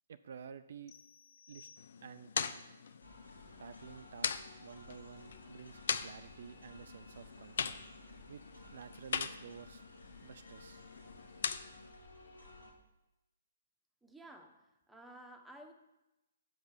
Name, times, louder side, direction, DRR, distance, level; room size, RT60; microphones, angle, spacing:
voice 1, 0.1-0.9 1.5-1.7 2.0-2.3 3.6-7.8 8.3-8.4 8.7-9.8 10.2-10.9, right 7 dB, 60° right, 11 dB, 0.4 m, -51 dB
sound 1, 0.9-2.4, left 6 dB, 35° left, 1.2 m, -59 dB
sound 2, 1.8-11.9, left 6 dB, 60° left, 0.5 m, -42 dB
sound 3, 3.0-12.7, left 1 dB, 90° left, 2.2 m, -56 dB
voice 2, 14.0-15.7, right 1 dB, 5° right, 2 dB, 0.9 m, -54 dB
7.8 x 5.3 x 6.0 m, 0.98 s
figure-of-eight pair, 130°, 0 cm